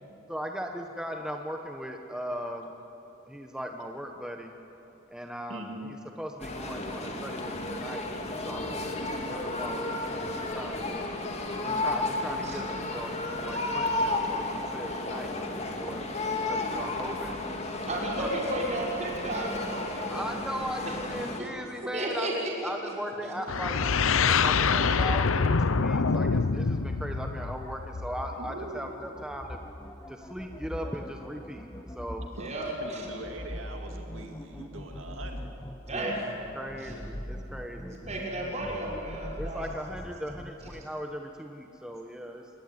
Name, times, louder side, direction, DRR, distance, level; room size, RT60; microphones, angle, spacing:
voice 1, 0.3-2.8 3.3-4.5 5.1-11.1 11.6-17.4 18.2-18.3 20.1-23.8 24.2-29.6 30.1-31.7 31.9-32.3 35.9-36.1 36.5-38.0 39.4-42.5, equal, 5° right, 3 dB, 1.2 m, -38 dB
voice 2, 5.5-5.9 28.4-28.9 32.3-35.5, right 2 dB, 70° right, 3 dB, 2.3 m, -42 dB
sound 1, 6.4-21.4, left 2 dB, 35° left, 2.9 m, -33 dB
voice 3, 17.9-20.3 20.8-21.5 21.9-22.7 32.3-33.1 35.9-36.2 36.8-36.9 37.9-39.7, right 1 dB, 35° right, -2 dB, 6.1 m, -33 dB
sound 2, 23.5-28.3, left 5 dB, 80° left, 0.8 m, -25 dB
sound 3, 23.7-40.9, equal, 15° left, 1.0 m, -42 dB
27.0 x 22.5 x 9.7 m, 3.0 s
head